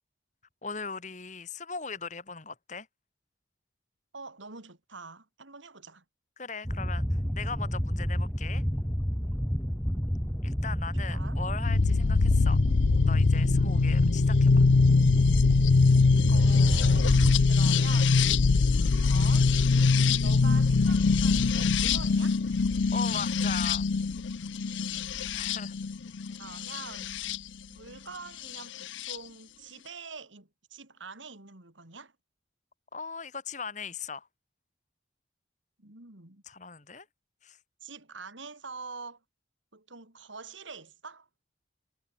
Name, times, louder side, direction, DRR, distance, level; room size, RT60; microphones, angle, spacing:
voice 1, 0.6-2.9 6.4-7.1 7.3-8.6 10.4-12.6 13.1-14.7 22.9-23.9 25.3-25.7 32.9-34.3 36.5-37.1 37.4-37.6, left 5 dB, 40° left, 2.1 m, -39 dB
voice 2, 4.1-6.0 11.0-11.4 16.3-18.2 18.9-19.5 20.2-22.4 24.7-25.1 25.4-25.6 26.3-27.2 27.7-32.1 35.8-36.4 37.8-39.2 39.7-41.3, right 4 dB, 90° right, 3.8 m, -45 dB
sound 1, 6.7-17.3, equal, 10° left, 2.1 m, -30 dB
sound 2, 11.6-27.4 28.5-29.2, left 4 dB, 85° left, 0.6 m, -23 dB
head